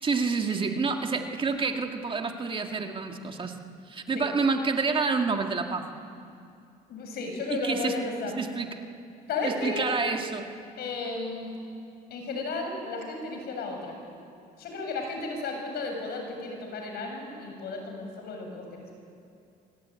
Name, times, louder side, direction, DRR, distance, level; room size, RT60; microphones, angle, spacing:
voice 1, 0.0-3.6 3.9-5.9 7.5-8.0 8.4-8.7 9.4-10.5, right 4 dB, 30° right, 4 dB, 2.2 m, -28 dB
voice 2, 6.9-8.3 9.3-9.9 10.8-11.5 12.1-13.9 14.6-18.6, left 3 dB, 70° left, 3 dB, 7.6 m, -34 dB
25.0 x 23.5 x 9.7 m, 2.5 s
cardioid pair, 110°, 17 cm